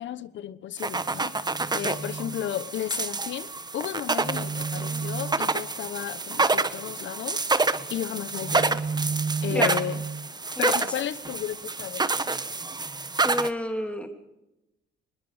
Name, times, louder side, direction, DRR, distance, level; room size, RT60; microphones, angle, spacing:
voice 1, 0.0-1.4 1.7-3.5 3.7-7.5 7.9-8.8 9.4-10.0 10.6-12.3, left 11 dB, 70° left, 1.2 m, -33 dB
sound 1, 0.8-13.5, right 3 dB, 20° right, 1.3 m, -28 dB
voice 2, 13.2-14.1, left 1 dB, 5° left, 3.4 m, -29 dB
24.0 x 21.0 x 5.1 m
cardioid pair, 90°, 20 cm